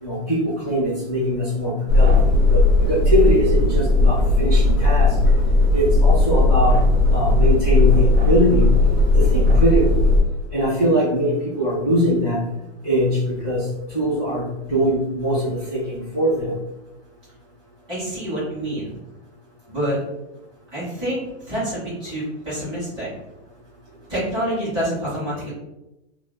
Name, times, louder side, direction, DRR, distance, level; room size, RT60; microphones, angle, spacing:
voice 1, 0.0-2.1 2.5-5.1 5.7-6.8 7.1-8.7 9.1-10.0 10.5-12.4 12.8-13.6 13.9-16.5, equal, 15° left, -11 dB, 1.5 m, -22 dB
sound 1, 1.9-10.2, left 2 dB, 40° right, 1.3 m, -16 dB
voice 2, 17.9-18.9 19.7-20.0 20.7-23.1 24.1-25.5, right 1 dB, 15° right, -12 dB, 1.5 m, -27 dB
3.3 x 2.5 x 2.2 m, 0.92 s
hypercardioid pair, 170°, 36 cm